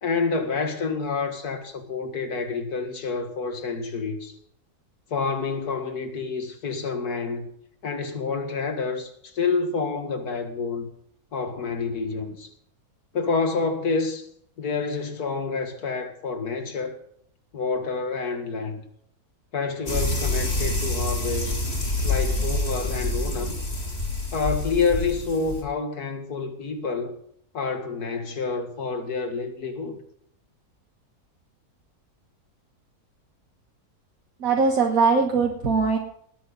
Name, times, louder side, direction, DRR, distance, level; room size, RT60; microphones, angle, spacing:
voice 1, 0.0-4.4 5.1-7.5 7.8-10.9 11.3-12.5 13.1-14.3 14.6-17.0 17.5-18.8 19.5-21.6 22.0-23.6 24.3-27.1 27.5-30.0, left 4 dB, 75° left, 2.3 m, -28 dB
sound 1, 19.9-25.6, left 2 dB, 40° left, 3.5 m, -27 dB
voice 2, 34.4-36.0, right 4 dB, 60° right, 1.9 m, -21 dB
19.5 x 10.0 x 4.0 m
omnidirectional pair, 1.7 m